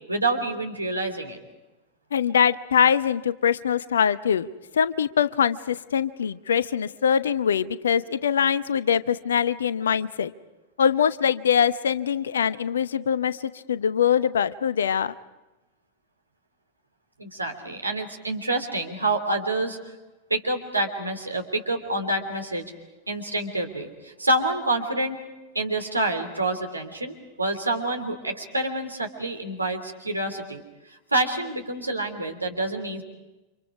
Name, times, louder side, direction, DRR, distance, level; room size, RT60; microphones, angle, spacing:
voice 1, 0.1-1.4 17.2-19.8 20.3-22.7 23.1-25.2 25.5-30.6 30.9-33.0, right 2 dB, 85° right, 4 dB, 3.2 m, -27 dB
voice 2, 2.1-4.5 4.7-10.3 10.8-15.1, left 8 dB, 65° left, 16 dB, 0.8 m, -23 dB
30.0 x 26.5 x 4.8 m, 1.1 s
figure-of-eight pair, 90°, 0 cm